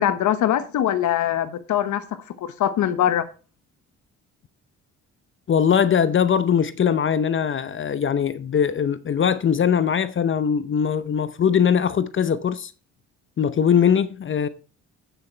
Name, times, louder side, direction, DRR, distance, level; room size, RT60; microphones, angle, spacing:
voice 1, 0.0-2.0 2.4-3.3, left 11 dB, 75° left, 1.1 m, -22 dB
voice 2, 5.5-12.7 13.4-14.5, left 7 dB, 40° left, 0.7 m, -21 dB
8.9 x 6.9 x 4.4 m
cardioid pair, 90°, 30 cm